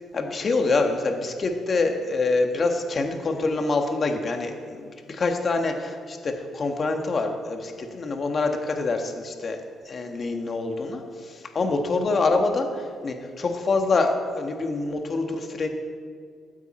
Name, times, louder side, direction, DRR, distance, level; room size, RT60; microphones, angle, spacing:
voice 1, 0.1-9.6 9.8-15.7, left 3 dB, 45° left, 4 dB, 1.6 m, -26 dB
15.5 x 9.5 x 4.3 m, 2.1 s
cardioid pair, 90°, 0 cm